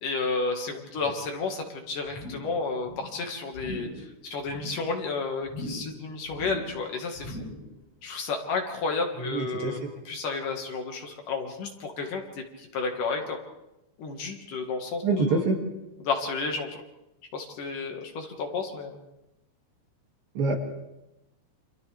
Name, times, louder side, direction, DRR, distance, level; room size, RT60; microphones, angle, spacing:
voice 1, 0.0-7.4 8.0-9.8 10.1-13.4 14.0-15.0 15.3-15.4 16.0-16.7 17.3-19.0, left 4 dB, 60° left, 3 dB, 3.1 m, -32 dB
sound 1, 2.1-2.6 2.8-3.2 3.5-4.0 4.4-4.9 5.4-6.0 6.3-6.8 7.2-7.7 8.1-8.2, left 1 dB, 40° left, 6.8 m, -39 dB
voice 2, 9.2-9.9 15.0-15.6 20.4-20.6, right 3 dB, 65° right, 1 dB, 4.1 m, -26 dB
29.0 x 26.0 x 3.4 m, 0.95 s
omnidirectional pair, 4.6 m